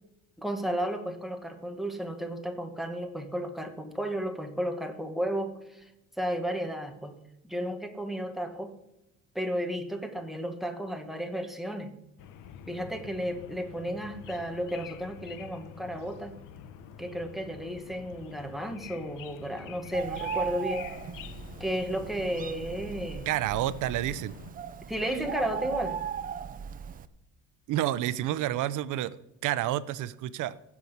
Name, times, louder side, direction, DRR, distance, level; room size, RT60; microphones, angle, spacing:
voice 1, 0.4-5.9 6.2-7.2 7.4-8.7 9.3-11.9 12.7-16.4 17.0-20.9 21.6-23.3 24.9-26.0, equal, ahead, 5 dB, 1.1 m, -33 dB
sound 1, 12.2-24.5, left 8 dB, 65° left, 1.0 m, -47 dB
Bird, 19.9-27.1, right 8 dB, 25° right, 0.5 m, -38 dB
voice 2, 23.3-24.3 27.7-30.5, right 13 dB, 60° right, 17 dB, 0.7 m, -29 dB
15.5 x 6.0 x 8.0 m, 0.91 s
cardioid pair, 175°, 34 cm